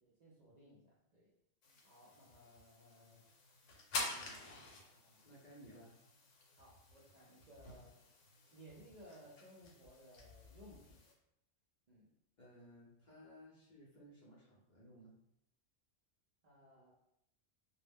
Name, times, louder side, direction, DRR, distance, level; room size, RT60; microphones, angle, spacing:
voice 1, 0.0-1.3 1.8-3.3 4.2-5.3 6.6-8.0 8.5-11.0 11.9-12.1 16.4-16.9, equal, 60° right, -6 dB, 0.4 m, -61 dB
sound 1, 1.6-11.1, left 2 dB, 75° left, 0.9 m, -49 dB
voice 2, 5.2-6.0 12.4-15.2, equal, 50° left, -6 dB, 0.6 m, -59 dB
2.3 x 2.1 x 3.4 m, 0.78 s
omnidirectional pair, 1.3 m